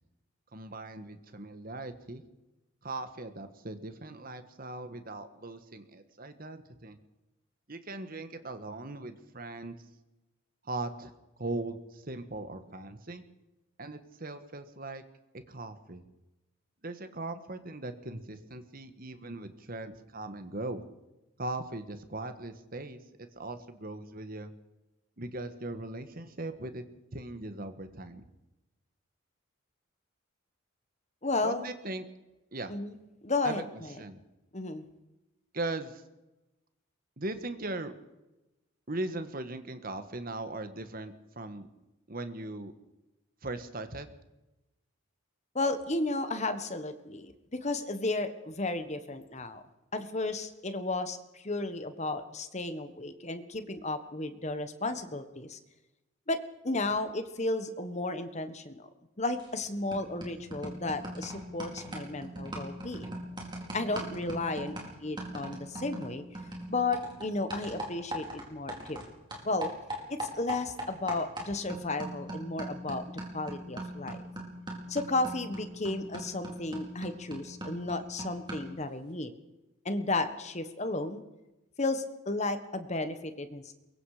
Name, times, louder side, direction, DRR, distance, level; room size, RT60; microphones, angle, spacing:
voice 1, 0.5-2.2 2.8-7.0 7.7-9.8 10.6-11.1 11.4-13.2 13.8-15.0 15.3-16.0 16.8-20.9 21.4-24.5 25.2-26.8 27.1-28.3 31.4-32.1 32.5-32.7 33.4-33.6 34.0-34.2 35.5-36.0 37.2-37.9 38.9-41.7 42.1-42.7 43.4-44.1, right 2 dB, 45° right, 9 dB, 1.6 m, -39 dB
voice 2, 31.2-31.7 32.7-32.9 33.2-33.6 34.5-34.8 45.5-49.6 49.9-55.6 56.3-58.9 59.2-63.1 63.7-66.2 66.7-69.0 69.4-69.7 70.2-73.0 73.3-74.2 74.9-79.3 79.8-81.2 81.8-83.7, left 2 dB, 35° left, 10 dB, 1.4 m, -33 dB
sound 1, 59.4-59.6 59.9-69.1 69.3-78.8, right 1 dB, 20° right, 4.6 m, -40 dB
23.0 x 22.0 x 5.1 m, 0.98 s
head